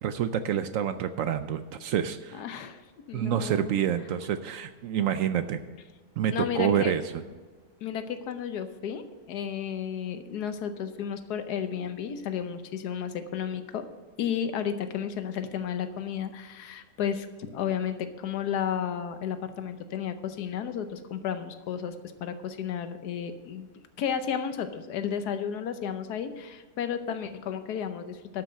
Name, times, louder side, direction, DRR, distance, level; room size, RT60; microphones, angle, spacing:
voice 1, 0.0-2.4 3.1-5.6 6.2-7.2, right 9 dB, 70° right, 11 dB, 0.9 m, -28 dB
voice 2, 2.3-2.8 3.1-3.8 6.3-6.9 7.8-13.9 14.2-23.7 24.0-28.4, left 8 dB, 80° left, 10 dB, 1.4 m, -33 dB
12.5 x 6.0 x 6.5 m, 1.4 s
omnidirectional pair, 1.7 m